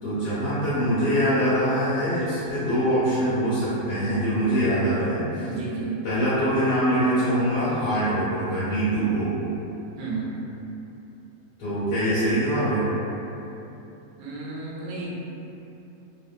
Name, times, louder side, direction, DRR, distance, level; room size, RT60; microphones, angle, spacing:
voice 1, 0.0-5.5 6.0-9.3 11.6-12.9, equal, 90° left, -13 dB, 1.5 m, -23 dB
voice 2, 5.5-6.0 10.0-10.5 14.2-15.1, right 3 dB, 70° right, -5 dB, 1.0 m, -32 dB
3.1 x 2.1 x 2.3 m, 3.0 s
omnidirectional pair, 1.7 m